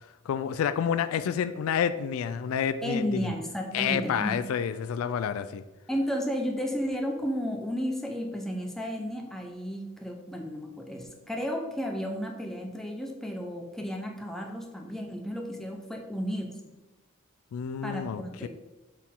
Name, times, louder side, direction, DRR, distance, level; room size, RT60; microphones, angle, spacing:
voice 1, 0.3-3.3 3.7-5.6 17.5-18.5, left 8 dB, 80° left, 13 dB, 0.3 m, -29 dB
voice 2, 2.8-4.5 5.9-16.6 17.8-18.5, equal, ahead, 1 dB, 0.6 m, -33 dB
6.3 x 4.0 x 3.7 m, 1.1 s
head